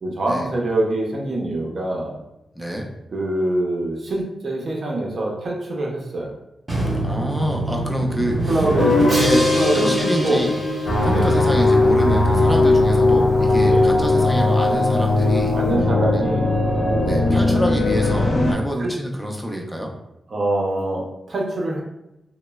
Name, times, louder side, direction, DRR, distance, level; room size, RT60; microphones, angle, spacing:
voice 1, 0.0-2.2 3.1-6.3 8.5-9.1 9.5-9.9 10.2-10.4 11.1-11.4 13.6-13.9 15.5-16.5 17.2-17.6 18.8-18.9 20.3-21.8, right 2 dB, 55° right, -1 dB, 0.6 m, -24 dB
voice 2, 2.5-2.9 7.0-8.6 9.1-10.6 11.0-15.5 16.1-16.3 17.0-19.9, equal, ahead, 0 dB, 0.4 m, -27 dB
Drum, 6.7-11.5, right 1 dB, 25° right, 0.8 m, -25 dB
Guitar, 8.8-13.6, left 2 dB, 70° left, 0.8 m, -24 dB
sound 1, 10.9-18.5, left 2 dB, 50° left, 0.5 m, -18 dB
3.0 x 2.1 x 2.2 m, 0.90 s
wide cardioid pair, 95°, 0 cm